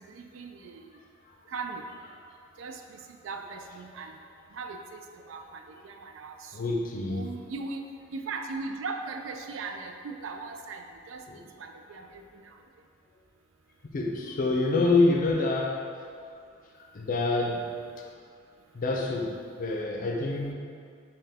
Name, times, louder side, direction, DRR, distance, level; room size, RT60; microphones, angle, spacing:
voice 1, 0.1-0.8 1.5-1.8 2.6-3.0 3.2-4.1 4.5-6.5 7.0-7.8 8.1-11.2 11.6-12.2, right 4 dB, 85° right, 5 dB, 0.3 m, -38 dB
voice 2, 6.5-7.3 11.3-11.5 13.8-15.8 16.8-17.7 18.0-18.1 18.7-20.5, left 3 dB, 45° left, 0 dB, 0.5 m, -27 dB
5.5 x 2.2 x 3.4 m, 2.3 s
head